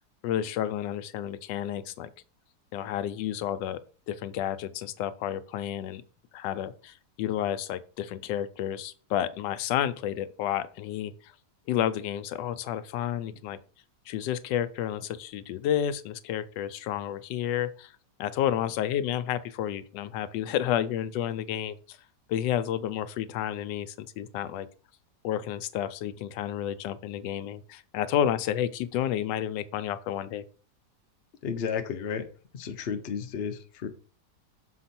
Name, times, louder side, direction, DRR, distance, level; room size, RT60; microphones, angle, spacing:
voice 1, 0.2-2.1 2.7-6.0 6.3-11.1 11.7-13.6 14.1-17.9 18.2-22.0 22.3-24.7 25.2-30.4, left 10 dB, 90° left, 13 dB, 1.2 m, -31 dB
voice 2, 31.4-32.3 32.5-33.9, left 7 dB, 55° left, 6 dB, 0.7 m, -32 dB
6.5 x 4.5 x 4.2 m, 0.40 s
omnidirectional pair, 1.9 m